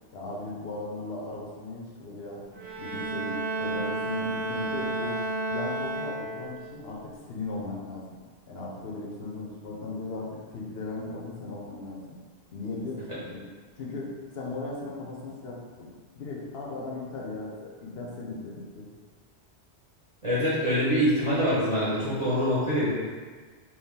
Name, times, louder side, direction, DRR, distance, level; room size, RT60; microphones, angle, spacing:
voice 1, 0.1-2.4 2.8-5.2 5.5-8.2 8.5-12.2 12.5-13.4 13.8-18.9, left 2 dB, 65° left, -4 dB, 0.8 m, -37 dB
Bowed string instrument, 2.5-6.6, right 2 dB, 80° right, 1.0 m, -31 dB
voice 2, 20.2-22.9, equal, 30° right, -11 dB, 1.0 m, -24 dB
2.9 x 2.8 x 3.6 m, 1.5 s
omnidirectional pair, 1.1 m